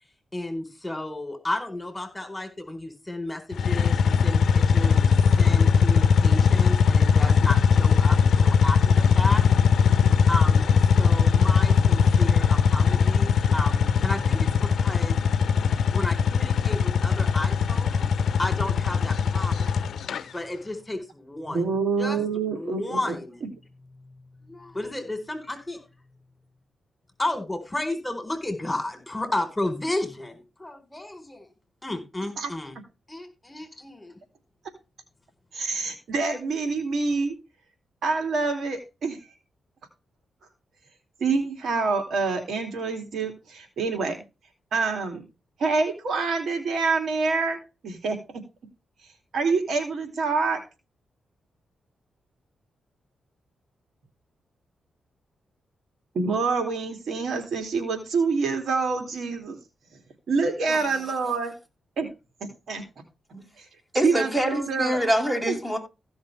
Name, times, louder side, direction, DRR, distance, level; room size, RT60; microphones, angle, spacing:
voice 1, 0.3-5.1 5.4-9.4 10.3-15.5 15.9-21.6 22.0-22.2 22.5-23.4 24.0-24.2 24.7-25.8 27.2-31.5 31.8-32.7 33.1-34.2, left 2 dB, 15° left, 4.3 m, -33 dB
sound 1, 3.5-20.2, left 6 dB, 75° left, 0.8 m, -20 dB
voice 2, 21.5-23.2 32.4-32.5 35.5-37.3 38.0-39.3 41.2-44.2 44.7-45.2 45.6-47.6 47.8-48.4 49.3-50.6 56.1-59.6 60.3-61.5 62.0-62.1 62.4-62.8 63.6-63.7 64.0-65.0 65.5-65.6, right 4 dB, 70° right, 2.8 m, -26 dB
voice 3, 63.9-65.8, equal, 5° right, 6.9 m, -25 dB
16.0 x 6.4 x 3.4 m
cardioid pair, 65°, 0 cm